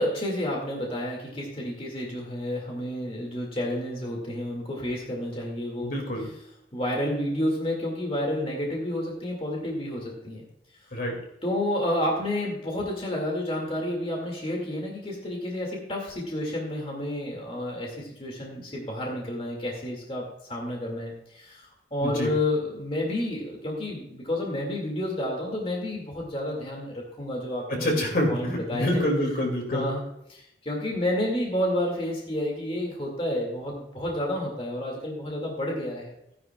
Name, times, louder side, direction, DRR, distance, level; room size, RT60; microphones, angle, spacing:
voice 1, 0.0-5.9 6.7-10.4 11.4-29.0 29.7-30.0 30.3-36.1, left 1 dB, 30° left, -1 dB, 2.3 m, -30 dB
voice 2, 5.8-6.3 10.9-11.2 22.0-22.3 27.7-29.8, left 1 dB, 55° left, 1 dB, 2.5 m, -26 dB
15.5 x 10.5 x 2.4 m, 0.81 s
head